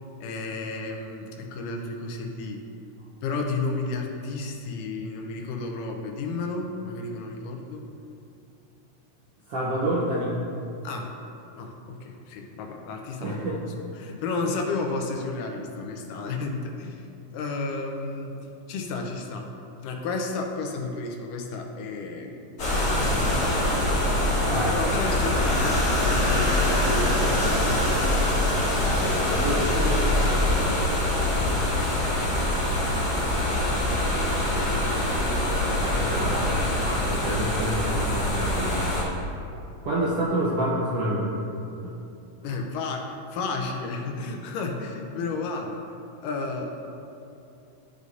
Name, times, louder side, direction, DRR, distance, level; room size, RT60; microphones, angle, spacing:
voice 1, 0.2-2.6 3.2-7.9 10.8-11.1 11.5-13.6 14.0-18.4 18.7-19.5 19.8-22.6 23.0-23.6 24.5-28.0 30.4-31.4 31.8-32.5 34.7-35.4 37.5-37.6 42.4-45.8 46.2-47.0, left 3 dB, 85° left, 2 dB, 2.3 m, -33 dB
voice 2, 9.5-10.3 13.2-13.6 24.4-24.7 29.2-30.3 35.8-39.0 39.8-41.3 41.8-41.9, right 1 dB, 75° right, -6 dB, 1.4 m, -28 dB
sound 1, 22.6-39.0, left 1 dB, 40° left, 1.6 m, -24 dB
14.0 x 4.9 x 2.6 m, 2.6 s
omnidirectional pair, 3.8 m